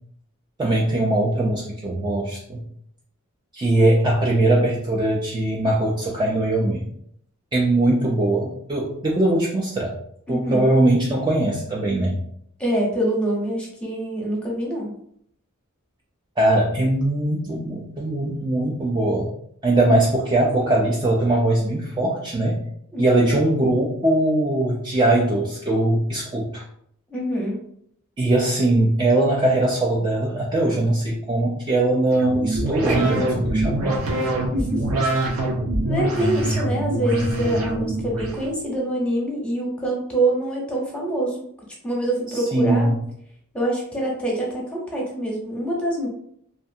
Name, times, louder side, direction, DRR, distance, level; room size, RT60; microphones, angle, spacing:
voice 1, 0.6-2.6 3.5-6.9 7.5-9.9 10.3-12.2 16.4-19.3 19.6-22.6 23.0-26.6 28.2-34.0 42.3-43.0, right 1 dB, 20° right, -3 dB, 0.3 m, -21 dB
voice 2, 10.3-10.7 12.6-14.9 22.9-23.4 27.1-27.6 34.5-34.8 35.8-41.4 41.8-42.9 43.5-46.1, right 1 dB, 5° left, -3 dB, 0.7 m, -25 dB
sound 1, 32.1-38.5, right 1 dB, 75° right, 0.7 m, -24 dB
2.5 x 2.4 x 2.6 m, 0.68 s
head